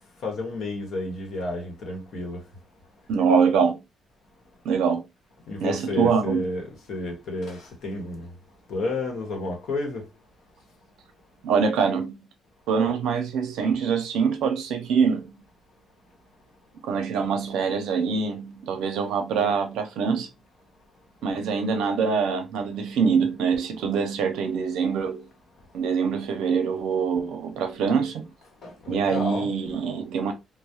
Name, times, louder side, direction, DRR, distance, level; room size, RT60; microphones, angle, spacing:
voice 1, 0.2-2.4 5.5-8.3 8.7-10.0 28.6-29.5, left 2 dB, 70° left, 0.9 m, -31 dB
voice 2, 3.1-3.8 4.6-5.0 5.6-6.4 11.4-12.2 12.7-15.3 16.8-20.3 21.2-25.3 25.7-28.2 28.9-30.3, right 6 dB, 85° right, 0.5 m, -24 dB
2.3 x 2.0 x 2.7 m
cardioid pair, 90°, 0 cm